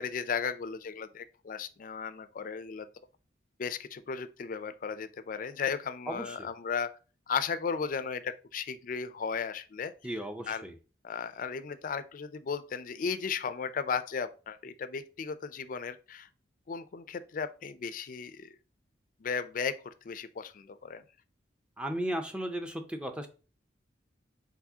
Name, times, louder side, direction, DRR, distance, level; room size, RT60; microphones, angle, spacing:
voice 1, 0.0-2.9 3.6-6.9 7.3-10.2 10.5-10.7 11.0-16.3 16.7-18.5 19.2-21.0, left 6 dB, 50° left, 0.4 m, -35 dB
voice 2, 6.1-6.5 10.0-10.7 21.8-23.3, right 1 dB, 5° right, 0.5 m, -35 dB
4.7 x 4.0 x 2.8 m
head